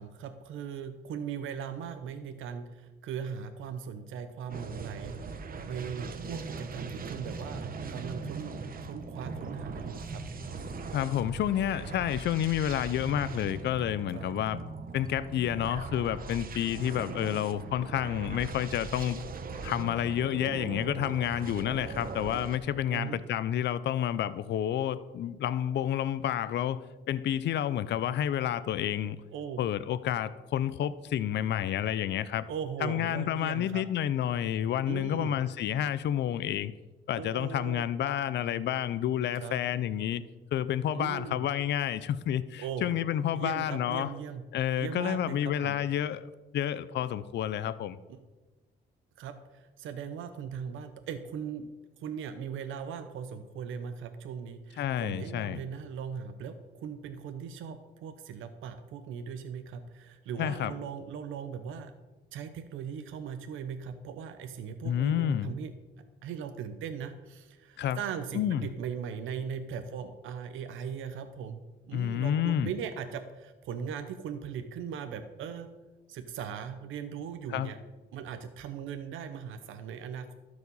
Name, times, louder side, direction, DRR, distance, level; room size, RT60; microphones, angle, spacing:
voice 1, 0.0-5.2 5.6-7.6 7.9-10.5 14.1-14.3 22.9-23.2 29.3-29.7 32.5-33.8 34.8-35.4 37.1-37.9 39.4-39.6 40.9-41.4 42.6-43.0 43.3-44.4 44.8-45.8 48.1-48.2 49.2-51.7 52.0-61.9 62.3-65.7 66.2-71.6 71.9-75.7 76.1-77.8 78.1-80.3, right 7 dB, 80° right, 0.8 m, -39 dB
sound 1, 4.5-22.6, right 4 dB, 45° right, 1.1 m, -40 dB
voice 2, 10.9-14.6 14.9-19.2 19.6-29.2 29.6-32.5 32.8-36.7 37.1-40.2 40.5-44.1 44.5-46.3 46.5-48.0 54.8-55.6 60.4-60.7 64.8-65.5 67.8-68.0 68.3-68.6 71.9-72.7 77.5-77.7, left 10 dB, 60° left, 0.5 m, -30 dB
12.0 x 5.0 x 6.9 m
cardioid pair, 90°, 20 cm